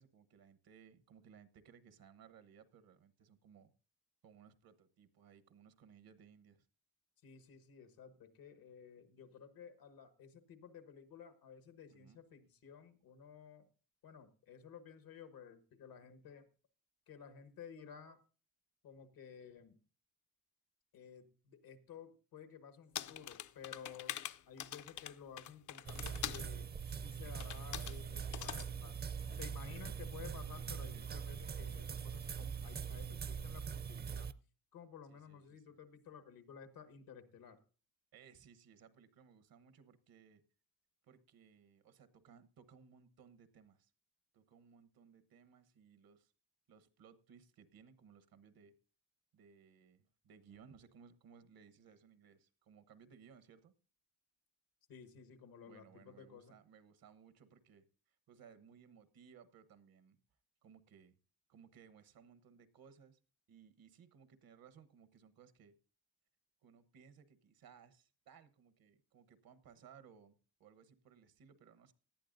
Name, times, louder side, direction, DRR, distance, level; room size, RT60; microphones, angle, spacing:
voice 1, 0.0-3.7 4.2-6.7 11.9-12.2 30.9-31.1 35.1-35.6 38.1-40.4 41.0-43.9 44.3-46.3 46.7-48.7 49.3-53.7 55.7-60.2 60.6-61.1 61.5-63.2 63.5-65.7 66.6-71.9, right 7 dB, 80° right, 13 dB, 1.2 m, -62 dB
voice 2, 7.2-13.7 14.0-16.4 17.1-18.2 18.8-19.8 20.9-29.0 29.3-34.3 34.7-37.6 54.9-56.6, left 7 dB, 90° left, 10 dB, 1.4 m, -55 dB
sound 1, 23.0-26.5 27.4-28.0 28.3-28.7, left 12 dB, 60° left, 0.5 m, -44 dB
sound 2, 25.8-34.3, right 7 dB, 30° right, 0.5 m, -43 dB
18.0 x 11.0 x 2.6 m, 0.37 s
cardioid pair, 125°, 35 cm